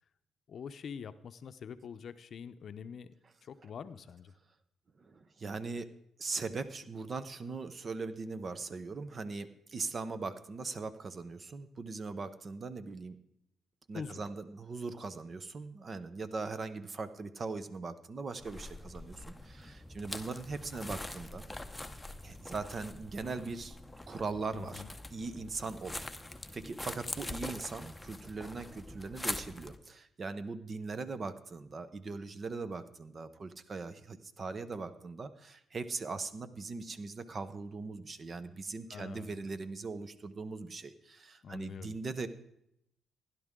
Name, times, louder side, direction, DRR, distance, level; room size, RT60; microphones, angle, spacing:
voice 1, 0.5-3.1 3.4-4.3 13.9-14.2 24.5-24.9 38.9-39.4 41.4-41.9, left 6 dB, 55° left, 11 dB, 0.7 m, -45 dB
voice 2, 5.0-5.9 6.2-13.2 13.9-21.5 22.2-23.8 24.1-24.8 25.1-26.0 26.5-42.3, right 4 dB, 40° right, 12 dB, 0.9 m, -40 dB
sound 1, 18.4-29.8, left 1 dB, 10° left, 0.8 m, -44 dB
16.0 x 11.0 x 3.7 m, 0.77 s
cardioid pair, 90°, 0 cm